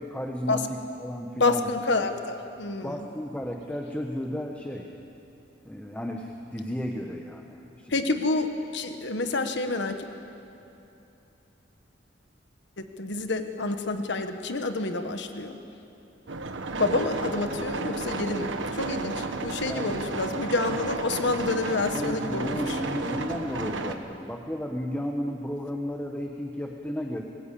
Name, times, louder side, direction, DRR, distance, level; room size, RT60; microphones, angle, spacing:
voice 1, 0.0-1.7 2.8-4.9 5.6-8.0 19.7-19.9 21.9-27.2, equal, 10° left, 2 dB, 1.2 m, -33 dB
voice 2, 1.4-3.0 7.9-10.1 12.8-15.6 16.8-22.8, left 3 dB, 70° left, 7 dB, 1.3 m, -28 dB
sound 1, 16.3-23.9, right 3 dB, 85° right, 1.4 m, -32 dB
22.5 x 20.0 x 8.6 m, 2.9 s
head